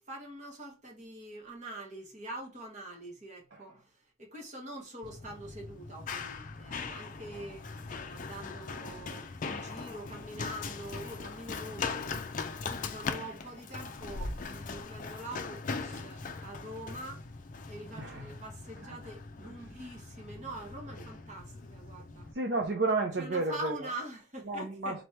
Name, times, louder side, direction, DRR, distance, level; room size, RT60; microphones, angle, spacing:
voice 1, 0.1-7.7 8.1-12.2 12.7-17.3 17.7-22.3 23.2-25.0, right 1 dB, 35° right, 1.4 m, -44 dB
Run, 5.0-22.3, left 4 dB, 40° left, 0.4 m, -40 dB
voice 2, 18.0-18.3 18.8-19.0 19.4-19.5 22.3-23.9 24.5-25.0, right 3 dB, 55° right, 0.6 m, -32 dB
4.0 x 3.2 x 3.2 m
head